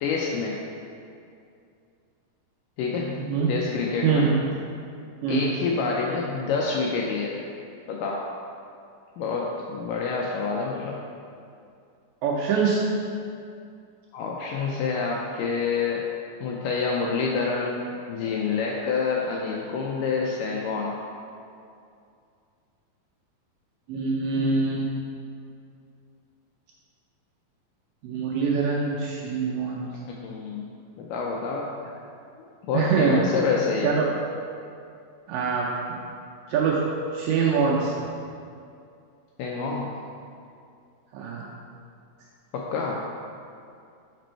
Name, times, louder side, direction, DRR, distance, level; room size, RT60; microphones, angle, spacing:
voice 1, 0.0-0.6 2.8-4.3 5.3-7.5 7.9-8.3 9.2-11.0 14.1-16.0 16.4-21.0 30.2-30.6 31.0-31.8 32.7-33.9 39.4-40.0 42.5-43.0, left 4 dB, 90° left, -2 dB, 1.9 m, -27 dB
voice 2, 3.2-3.5 4.0-4.4 5.2-5.4 12.2-12.8 23.9-24.9 28.0-29.9 32.7-33.2 33.8-34.1 35.3-35.7 36.5-36.8 37.1-37.9 41.1-41.5, right 5 dB, 80° right, -3 dB, 2.0 m, -24 dB
5.3 x 5.1 x 4.4 m, 2.4 s
omnidirectional pair, 4.4 m